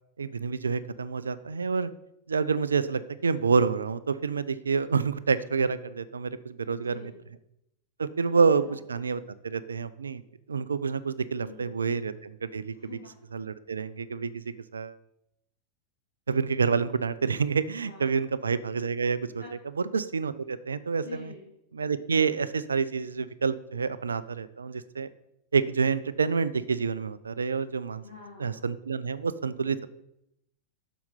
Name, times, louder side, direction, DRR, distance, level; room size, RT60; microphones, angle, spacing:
voice 1, 0.2-1.9 2.3-7.1 8.0-10.2 10.5-12.7 13.3-14.4 14.7-14.9 16.3-19.4 19.9-21.3 21.7-25.1 25.5-28.0 28.4-29.8, right 5 dB, 75° right, 16 dB, 0.4 m, -28 dB
voice 2, 6.6-7.3 8.2-8.8 11.3-11.8 12.7-13.2 17.8-18.3 19.4-19.5 21.0-21.5 28.0-28.7, left 4 dB, 85° left, -6 dB, 2.2 m, -47 dB
7.1 x 6.2 x 5.5 m, 0.80 s
figure-of-eight pair, 90°, 0 cm